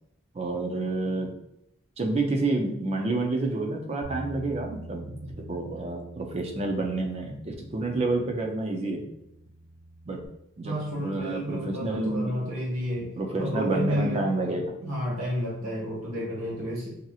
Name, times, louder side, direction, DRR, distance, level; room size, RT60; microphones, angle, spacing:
voice 1, 0.3-1.3 2.0-9.0 10.1-10.2 10.6-12.3 13.2-14.7, right 2 dB, 30° right, 2 dB, 0.4 m, -29 dB
Bass guitar, 4.0-10.3, right 1 dB, 70° left, 0.4 m, -45 dB
voice 2, 10.6-13.1 13.4-14.2 14.8-17.0, equal, 85° right, -5 dB, 1.3 m, -31 dB
2.8 x 2.7 x 2.3 m, 0.80 s
head